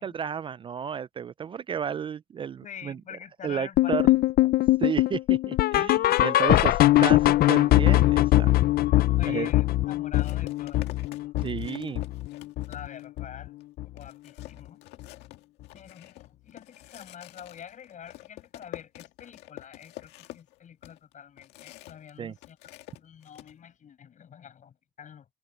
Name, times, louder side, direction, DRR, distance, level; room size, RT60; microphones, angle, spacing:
voice 1, 0.0-3.0 3.4-4.1 4.8-8.5 9.3-9.5 11.4-12.0 22.2-22.4, right 8 dB, 30° right, 0.3 m, -32 dB
voice 2, 2.6-4.5 9.2-10.9 11.2-11.3 12.7-13.5 13.9-14.8 15.7-22.6 22.9-25.3, left 8 dB, 50° left, 7.6 m, -46 dB
sound 1, 3.8-12.9 13.2-13.5 13.8-13.9 14.4-14.5 15.0-15.1, left 16 dB, 65° left, 0.5 m, -22 dB
sound 2, 9.2-9.4 10.2-13.2 13.6-13.7 14.0-22.1 22.4-23.5, left 16 dB, 85° left, 1.7 m, -47 dB
cardioid pair, 110°, 17 cm